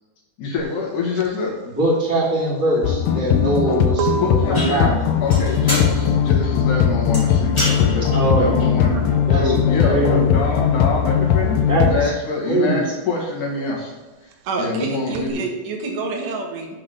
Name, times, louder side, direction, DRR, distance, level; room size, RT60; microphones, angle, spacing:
voice 1, 0.4-1.5 4.1-4.9 5.2-9.0 9.3-13.9 14.2-14.3 14.6-15.4, left 3 dB, 65° left, -3 dB, 3.0 m, -25 dB
sound 1, 0.6-10.8 11.1-15.3, right 9 dB, 90° right, 2.4 m, -33 dB
voice 2, 1.7-5.0 8.1-9.5 9.8-10.4 11.7-12.1 12.4-12.8, right 1 dB, 5° right, -10 dB, 1.8 m, -22 dB
sound 2, 2.8-12.1, left 8 dB, 80° left, 2.1 m, -19 dB
sound 3, 4.5-10.8, equal, 10° left, 1.6 m, -32 dB
voice 3, 14.5-16.8, right 3 dB, 65° right, 0 dB, 2.8 m, -27 dB
7.6 x 3.8 x 6.5 m, 1.2 s
omnidirectional pair, 4.1 m